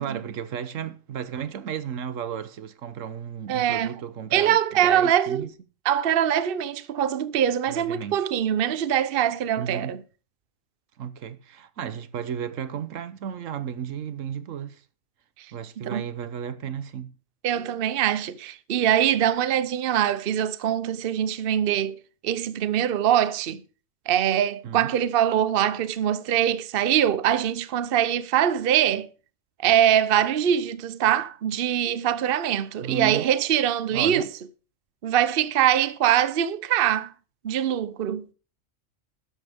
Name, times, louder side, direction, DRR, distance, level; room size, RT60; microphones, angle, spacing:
voice 1, 0.0-5.5 7.7-8.3 9.6-9.9 11.0-14.8 15.5-17.1 24.6-24.9 32.8-33.3 33.9-34.3, right 8 dB, 75° right, 1.2 m, -34 dB
voice 2, 3.5-4.0 4.3-5.5 5.9-10.0 15.9-16.0 17.4-23.6 24.1-29.1 29.6-34.3 35.0-37.1 37.4-38.2, right 10 dB, 50° right, 0.9 m, -23 dB
12.5 x 10.5 x 3.5 m
omnidirectional pair, 1.4 m